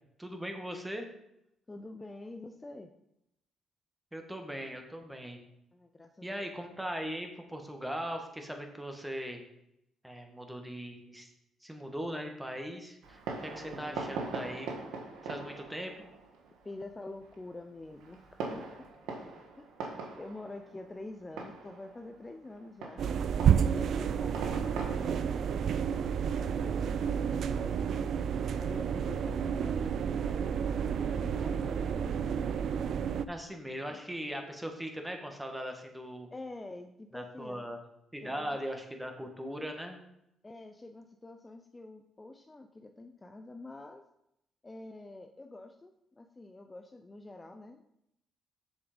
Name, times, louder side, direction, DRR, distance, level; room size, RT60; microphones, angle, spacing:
voice 1, 0.2-1.1 4.1-5.4 6.2-9.4 10.0-11.3 11.6-14.8 15.2-15.9 33.3-36.3 37.1-37.8 38.1-40.0, equal, 10° right, 4 dB, 1.7 m, -39 dB
voice 2, 1.7-2.9 5.7-6.3 13.5-14.1 16.6-18.6 19.6-19.7 20.2-23.1 23.6-28.1 28.6-32.7 33.9-34.0 36.3-37.7 38.2-38.6 40.4-44.0 44.6-47.8, left 2 dB, 20° left, 5 dB, 0.6 m, -47 dB
Fireworks, 13.0-27.2, right 4 dB, 90° right, 1.5 m, -43 dB
sound 1, 23.0-33.3, right 7 dB, 65° right, 0.4 m, -30 dB
7.3 x 6.9 x 5.1 m, 0.80 s
cardioid pair, 90°, 0 cm